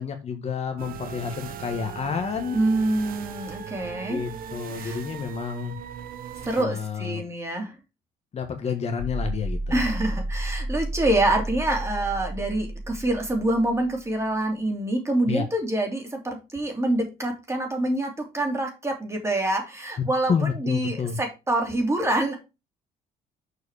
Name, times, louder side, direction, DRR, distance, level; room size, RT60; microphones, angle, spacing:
voice 1, 0.0-2.6 4.1-5.8 6.6-7.2 8.3-9.8 15.3-15.4 20.3-21.2, left 6 dB, 40° left, 5 dB, 1.4 m, -29 dB
sound 1, 0.8-6.6, right 8 dB, 60° right, 0.9 m, -38 dB
voice 2, 2.5-4.2 4.7-5.0 6.4-7.7 9.7-22.4, right 1 dB, 15° right, 2 dB, 3.0 m, -26 dB
sound 2, 9.0-14.0, right 1 dB, 60° left, 2.3 m, -32 dB
6.7 x 4.7 x 4.9 m, 0.27 s
cardioid pair, 110°, 17 cm